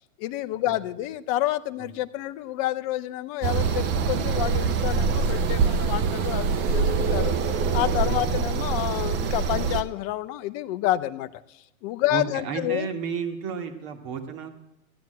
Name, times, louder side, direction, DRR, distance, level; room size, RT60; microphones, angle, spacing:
voice 1, 0.2-7.4 7.7-12.9, left 14 dB, 25° left, 12 dB, 0.5 m, -29 dB
sound 1, 3.4-9.8, right 5 dB, 25° right, 0.8 m, -24 dB
voice 2, 8.0-8.3 12.1-14.5, right 6 dB, 40° right, 5 dB, 2.3 m, -32 dB
15.0 x 9.5 x 7.8 m, 0.92 s
hypercardioid pair, 125°, 43 cm